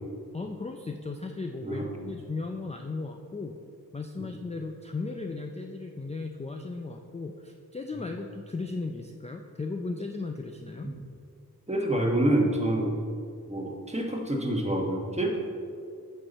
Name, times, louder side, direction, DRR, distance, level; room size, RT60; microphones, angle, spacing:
voice 1, 0.3-3.6 3.9-10.9, left 3 dB, 20° left, 3 dB, 0.4 m, -36 dB
voice 2, 11.7-13.0 13.5-15.4, right 1 dB, 20° right, 0 dB, 1.2 m, -27 dB
8.7 x 5.5 x 4.1 m, 2.4 s
wide cardioid pair, 60°, 36 cm